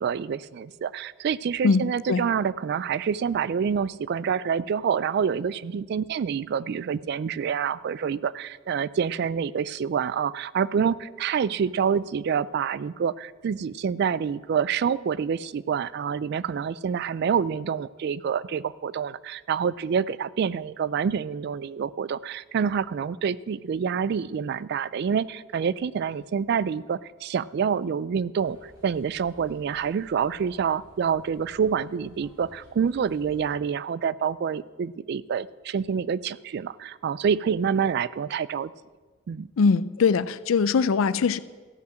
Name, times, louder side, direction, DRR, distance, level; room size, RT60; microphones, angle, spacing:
voice 1, 0.0-38.7 39.3-39.5, right 7 dB, 55° right, 19 dB, 0.3 m, -27 dB
voice 2, 1.6-2.2 39.6-41.4, left 5 dB, 80° left, 16 dB, 0.4 m, -22 dB
sound 1, 28.4-33.5, equal, 20° right, 2.5 m, -54 dB
14.5 x 5.7 x 7.6 m, 1.4 s
head